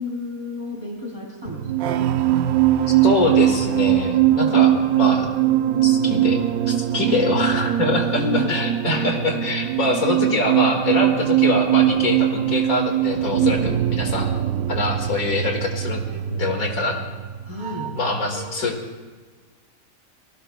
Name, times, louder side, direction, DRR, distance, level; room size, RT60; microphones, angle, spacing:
voice 1, 0.0-2.1 4.2-4.7 8.0-8.6 13.4-13.8 17.4-17.9, left 1 dB, 20° right, -2 dB, 3.3 m, -30 dB
sound 1, 1.5-18.1 18.4-18.7, right 12 dB, 85° right, 1.1 m, -21 dB
voice 2, 3.0-5.3 5.8-6.4 6.7-13.6 13.9-14.3 14.7-17.0 17.9-18.8, left 3 dB, 80° left, 2 dB, 2.4 m, -24 dB
28.5 x 19.0 x 2.3 m, 1.4 s
omnidirectional pair, 1.5 m